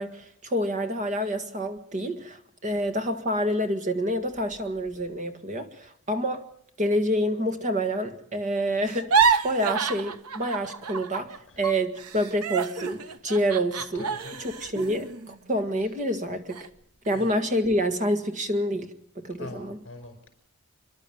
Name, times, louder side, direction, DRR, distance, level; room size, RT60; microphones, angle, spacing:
voice 1, 0.0-6.4 6.8-16.7 17.1-19.8, equal, 35° right, 7 dB, 1.7 m, -28 dB
sound 1, 8.9-11.4 11.6-16.0 16.5-16.7 17.1-17.6, right 5 dB, 85° right, 1.0 m, -28 dB
voice 2, 14.0-14.4 17.1-17.3 19.4-20.3, left 2 dB, 60° left, 7 dB, 5.3 m, -42 dB
29.0 x 11.5 x 9.2 m, 0.70 s
head